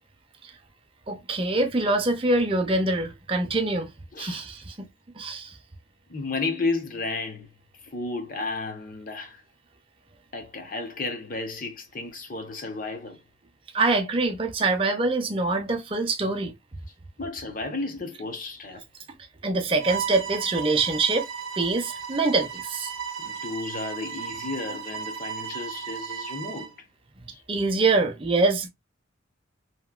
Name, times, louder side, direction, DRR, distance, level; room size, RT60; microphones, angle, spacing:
voice 1, 1.1-3.9 4.2-4.9 5.2-5.5 13.7-16.5 19.4-21.3 21.6-22.9 27.5-28.7, right 3 dB, 25° right, 0.5 m, -24 dB
voice 2, 6.1-7.5 7.8-9.4 10.3-13.2 17.2-18.8 23.2-26.7 27.3-27.4, left 3 dB, 45° left, 0.7 m, -33 dB
Bowed string instrument, 19.8-26.7, right 7 dB, 85° right, 0.6 m, -35 dB
2.9 x 2.6 x 2.3 m
head